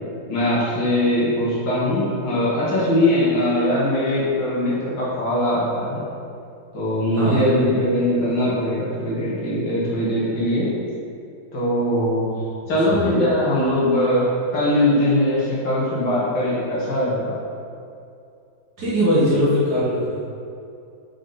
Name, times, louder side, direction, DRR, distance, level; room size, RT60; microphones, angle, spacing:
voice 1, 0.3-6.0 6.7-10.7 11.5-17.4, left 1 dB, 60° left, -8 dB, 2.1 m, -21 dB
voice 2, 7.2-7.5 12.9-13.0 18.8-20.3, equal, 50° right, -9 dB, 1.9 m, -20 dB
5.2 x 5.0 x 4.0 m, 2.5 s
omnidirectional pair, 2.3 m